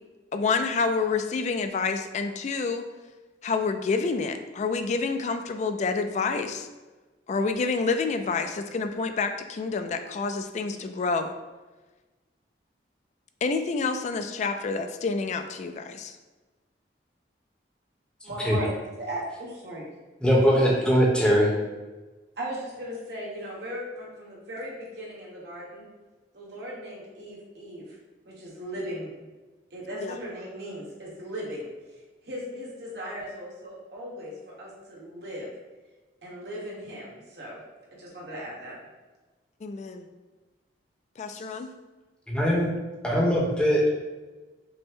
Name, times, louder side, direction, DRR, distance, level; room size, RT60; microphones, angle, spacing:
voice 1, 0.3-2.8 3.4-6.7 7.3-11.3 13.4-16.1 30.0-30.2 39.6-40.1 41.2-41.7, left 4 dB, 40° left, 7 dB, 0.3 m, -28 dB
voice 2, 18.2-18.7 19.0-19.9 20.7-20.8 22.4-25.9 26.3-28.0 28.2-29.3 29.7-31.7 32.2-35.5 36.2-37.6 37.9-38.8, equal, 65° right, -5 dB, 1.3 m, -37 dB
voice 3, 20.2-21.5 42.3-42.7 43.0-43.9, equal, 5° left, -5 dB, 0.9 m, -21 dB
5.4 x 2.1 x 3.6 m, 1.2 s
head